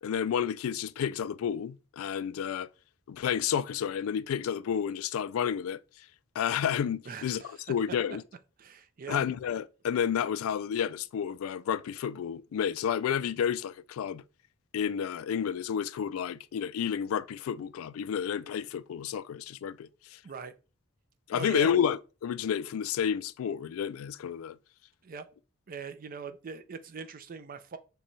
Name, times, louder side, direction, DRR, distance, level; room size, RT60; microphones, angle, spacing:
voice 1, 0.0-2.7 3.1-5.8 6.4-8.2 9.1-14.2 14.7-20.2 21.3-24.6, left 8 dB, 80° left, 0.3 m, -31 dB
voice 2, 7.1-7.6 8.6-9.2 20.2-20.5 21.3-21.7 25.0-25.3 25.7-27.8, right 4 dB, 45° right, 0.4 m, -41 dB
6.5 x 2.3 x 3.1 m
head